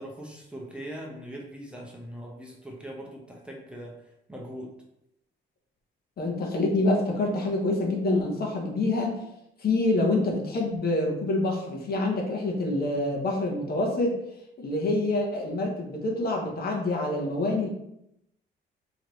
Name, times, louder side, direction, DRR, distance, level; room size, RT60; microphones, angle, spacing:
voice 1, 0.0-4.7, equal, 5° right, -2 dB, 0.9 m, -41 dB
voice 2, 6.2-9.2 9.6-14.2 14.6-17.7, left 2 dB, 50° left, 0 dB, 1.0 m, -26 dB
3.2 x 3.1 x 4.0 m, 0.80 s
cardioid pair, 90°, 20 cm